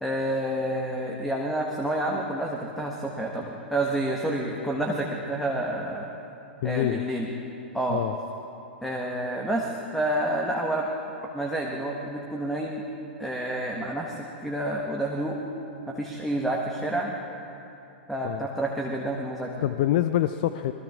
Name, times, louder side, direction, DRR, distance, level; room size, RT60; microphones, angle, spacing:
voice 1, 0.0-6.1 6.6-7.3 7.7-8.0 8.8-10.9 11.3-12.8 13.2-15.4 15.9-17.1 18.1-19.6, right 1 dB, ahead, -1 dB, 1.3 m, -29 dB
voice 2, 6.6-7.0 7.9-8.2 18.2-18.5 19.6-20.7, left 13 dB, 50° left, 11 dB, 0.4 m, -25 dB
27.0 x 21.5 x 2.5 m, 2.9 s
figure-of-eight pair, 100°, 6 cm